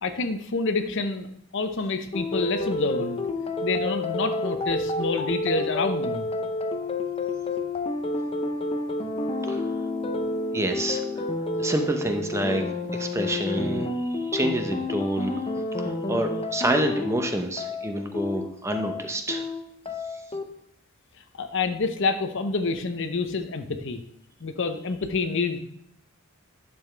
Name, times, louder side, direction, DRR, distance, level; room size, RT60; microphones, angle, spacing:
voice 1, 0.0-1.3 1.5-3.2 3.6-6.3 21.4-24.0 24.4-25.6, left 3 dB, 60° left, 8 dB, 0.7 m, -27 dB
sound 1, 2.1-20.4, left 2 dB, 25° left, 0.6 m, -29 dB
voice 2, 10.5-11.0 11.6-12.7 12.9-15.4 15.8-19.4, right 1 dB, 15° right, 5 dB, 0.7 m, -28 dB
10.5 x 7.0 x 3.3 m, 0.72 s
head